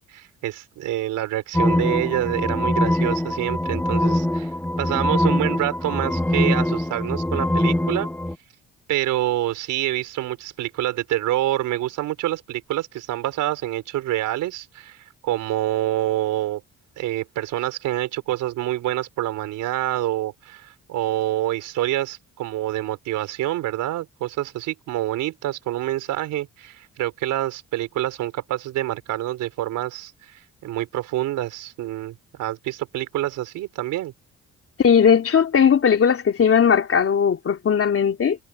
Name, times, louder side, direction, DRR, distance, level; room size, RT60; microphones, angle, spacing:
voice 1, 0.0-8.1 8.9-16.6 17.0-34.1, right 14 dB, 90° right, 4.5 m, -27 dB
sound 1, 1.5-8.4, left 1 dB, 5° left, 1.1 m, -23 dB
voice 2, 34.8-38.4, left 7 dB, 50° left, 3.3 m, -18 dB
cardioid pair, 90°, 30 cm